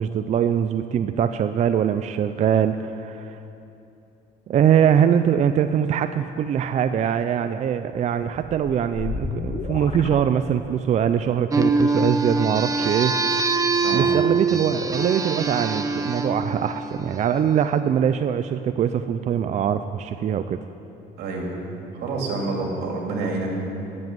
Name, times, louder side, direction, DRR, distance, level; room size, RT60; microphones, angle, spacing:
voice 1, 0.0-3.4 4.5-13.1 13.9-20.6, right 8 dB, 45° right, 9 dB, 0.4 m, -22 dB
sound 1, 8.3-11.0, left 4 dB, 35° left, 0.8 m, -32 dB
sound 2, 11.5-17.5, right 3 dB, 20° right, 0.8 m, -24 dB
voice 2, 21.2-21.6 22.0-23.5, right 3 dB, 80° right, 0 dB, 2.5 m, -28 dB
11.0 x 7.4 x 9.2 m, 2.8 s
cardioid pair, 110°, 17 cm